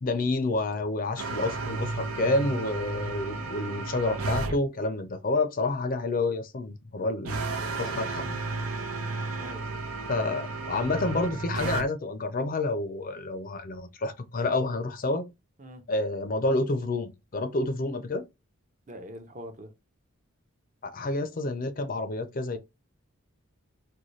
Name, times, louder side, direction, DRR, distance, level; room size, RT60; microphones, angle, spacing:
voice 1, 0.0-7.4 7.8-8.4 10.1-15.2 15.9-18.2 20.8-22.6, left 2 dB, 40° left, 0.4 m, -29 dB
sound 1, 1.2-4.6 7.2-11.8, right 3 dB, 90° right, 0.7 m, -33 dB
voice 2, 9.4-9.7 15.6-15.8 18.9-19.7, equal, 35° right, 0.6 m, -43 dB
3.9 x 2.2 x 3.1 m
head